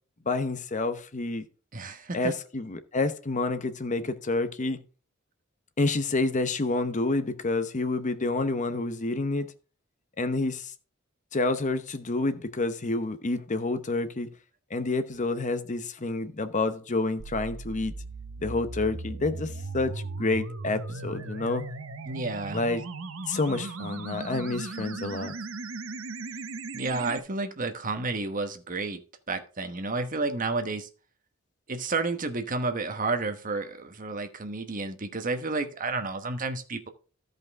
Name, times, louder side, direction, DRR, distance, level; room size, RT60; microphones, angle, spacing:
voice 1, 0.3-1.4 2.1-4.8 5.8-9.5 10.2-10.7 11.3-14.3 14.7-17.9 18.4-21.6 22.5-22.8 23.3-25.3, left 2 dB, 35° left, 0.8 m, -28 dB
voice 2, 1.7-2.3 22.1-22.6 26.7-29.0 29.3-30.9 31.7-36.9, right 3 dB, 40° right, 1.1 m, -31 dB
sound 1, 17.2-27.2, right 3 dB, 75° right, 0.9 m, -37 dB
13.5 x 5.3 x 3.5 m
head